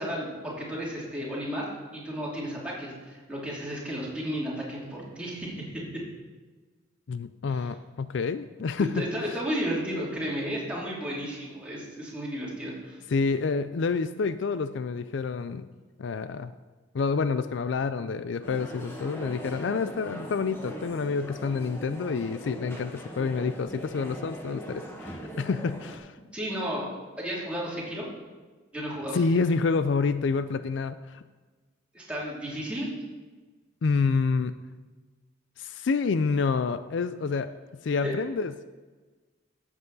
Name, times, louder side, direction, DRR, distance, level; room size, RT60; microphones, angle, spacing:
voice 1, 0.0-1.7 1.9-6.0 7.6-7.7 8.9-13.0 26.3-26.9 27.2-28.1 28.7-29.2 31.9-32.9 38.0-38.1, equal, 5° right, -6 dB, 2.8 m, -33 dB
voice 2, 7.1-9.0 13.1-15.7 16.0-16.5 16.9-26.1 29.1-31.2 33.8-34.5 35.6-37.5 37.8-38.7, left 4 dB, 65° left, 12 dB, 0.4 m, -28 dB
Hall Full of People - Ambience, 18.4-26.0, equal, 10° left, 1.3 m, -40 dB
13.0 x 8.0 x 4.0 m, 1.3 s
head